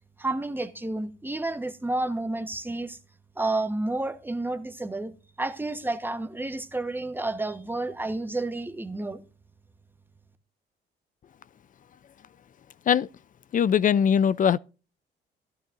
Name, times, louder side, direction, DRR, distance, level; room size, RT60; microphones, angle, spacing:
voice 1, 0.2-3.0 3.4-5.1 5.4-9.2, right 2 dB, 10° right, 1.1 m, -30 dB
voice 2, 13.5-14.6, left 8 dB, 40° left, 0.4 m, -21 dB
14.0 x 12.5 x 2.6 m
cardioid pair, 90°, 20 cm